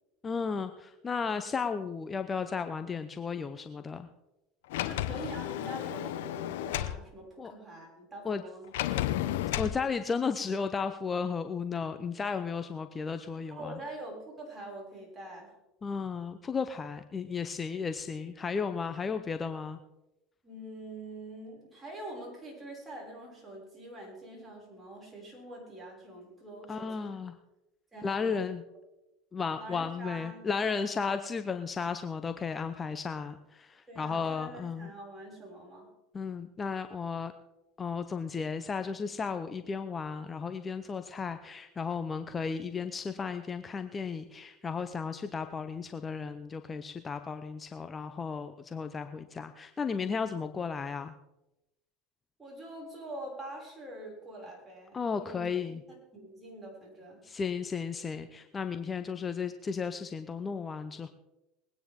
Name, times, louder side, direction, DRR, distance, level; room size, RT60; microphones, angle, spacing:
voice 1, 0.2-4.1 7.4-7.5 8.2-8.4 9.6-13.8 15.8-19.8 26.7-27.3 28.0-28.6 29.3-34.9 36.1-37.3 37.8-51.1 54.9-55.8 57.2-61.1, left 5 dB, 25° left, 9 dB, 0.8 m, -34 dB
Sliding door, 4.7-7.0 8.7-9.8, left 13 dB, 80° left, 0.9 m, -32 dB
voice 2, 4.8-9.0 13.5-15.5 20.4-27.2 27.9-28.5 29.6-30.9 33.9-35.9 52.4-55.5 55.9-57.2, right 1 dB, 15° right, -2 dB, 6.3 m, -45 dB
21.5 x 9.4 x 3.7 m, 0.95 s
hypercardioid pair, 90°, 0 cm